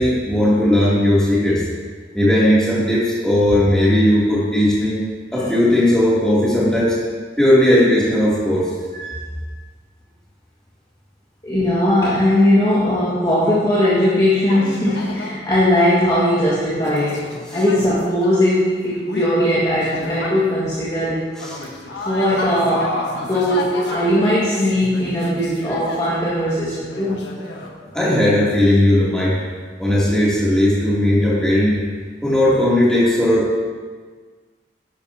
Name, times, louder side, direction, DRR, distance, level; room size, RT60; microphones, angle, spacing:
voice 1, 0.0-1.6 2.1-5.0 5.3-7.0 7.4-8.7 17.5-17.6 21.4-21.6 27.9-29.4 29.8-31.8 32.2-33.6, left 1 dB, 5° left, -8 dB, 2.8 m, -16 dB
voice 2, 11.4-21.3 22.0-27.3, left 1 dB, 20° left, -10 dB, 1.9 m, -19 dB
sound 1, 14.5-15.4 15.7-20.8 21.2-27.7, left 1 dB, 75° left, 1.4 m, -31 dB
11.0 x 10.5 x 2.9 m, 1.5 s
head